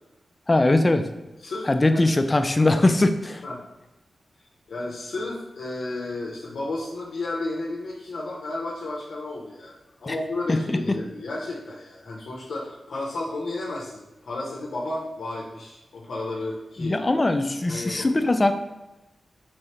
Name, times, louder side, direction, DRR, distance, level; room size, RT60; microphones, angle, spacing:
voice 1, 0.5-1.1 1.7-3.4 10.1-10.2 10.5-11.0 16.8-18.5, left 2 dB, 25° left, 8 dB, 0.3 m, -21 dB
voice 2, 1.4-2.1 3.4-3.6 4.7-17.0 17.7-18.1, left 2 dB, 80° left, -3 dB, 0.6 m, -32 dB
3.5 x 3.2 x 2.8 m, 1.0 s
cardioid pair, 75°, 0 cm